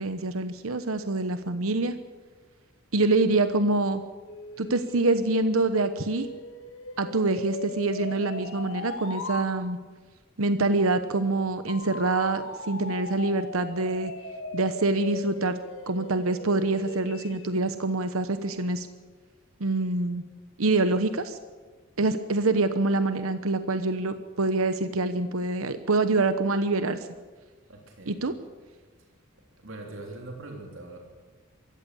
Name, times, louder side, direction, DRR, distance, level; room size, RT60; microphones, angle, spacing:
voice 1, 0.0-2.0 2.9-4.0 4.6-6.3 7.0-9.8 10.4-14.1 14.5-15.6 15.9-18.9 19.6-20.2 20.6-21.4 22.0-27.1 28.1-28.3, right 2 dB, 85° right, 10 dB, 1.0 m, -25 dB
sound 1, 4.3-9.5 11.7-17.5, left 3 dB, 65° left, 2.2 m, -39 dB
voice 2, 27.7-28.2 29.6-31.0, right 2 dB, 65° right, 1 dB, 3.5 m, -42 dB
23.5 x 14.5 x 8.4 m, 1.4 s
head